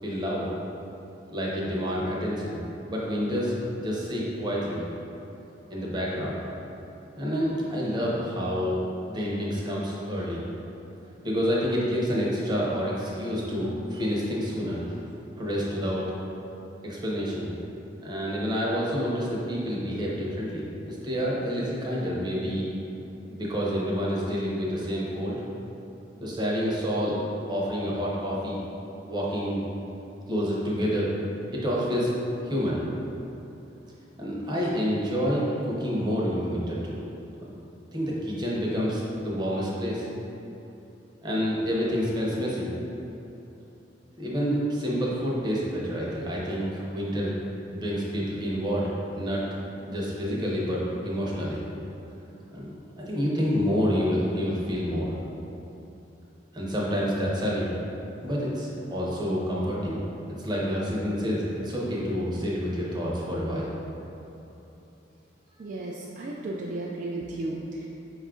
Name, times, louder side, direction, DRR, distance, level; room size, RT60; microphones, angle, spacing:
voice 1, 0.0-0.5 1.3-2.6 2.9-4.8 5.7-6.4 7.2-8.8 9.1-10.4 11.2-15.0 15.4-16.0 16.8-17.5 18.0-22.7 23.3-25.4 26.2-27.2 27.5-28.6 29.1-29.6 30.3-31.1 31.5-32.1 32.5-32.8 34.2-37.0 37.9-40.1 41.2-42.7 44.2-47.3 47.7-48.9 49.2-49.4 49.9-51.6 52.5-55.1 56.5-57.7 58.2-60.0 60.4-63.7, equal, 25° right, -5 dB, 0.7 m, -28 dB
voice 2, 65.6-67.9, right 2 dB, 45° right, -3 dB, 0.3 m, -34 dB
5.1 x 2.4 x 3.7 m, 3.0 s
head